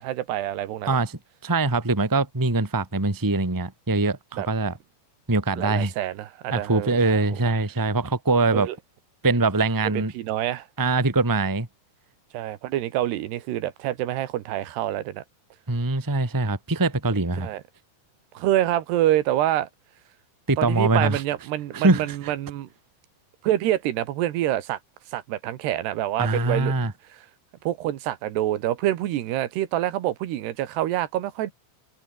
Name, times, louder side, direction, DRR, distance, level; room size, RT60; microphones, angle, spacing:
voice 1, 0.0-1.0 4.4-4.5 5.6-7.2 8.5-8.8 9.9-10.7 12.3-15.2 17.4-17.6 18.3-19.7 20.6-22.7 23.4-24.8 25.1-26.9 27.6-31.5, right 13 dB, 80° right, 3.4 m, -26 dB
voice 2, 0.9-4.8 5.3-5.9 6.5-8.7 9.2-10.1 10.8-11.7 15.7-17.5 20.5-21.2 21.7-22.3 26.2-26.9, right 3 dB, 10° right, 1.3 m, -23 dB
omnidirectional pair, 4.8 m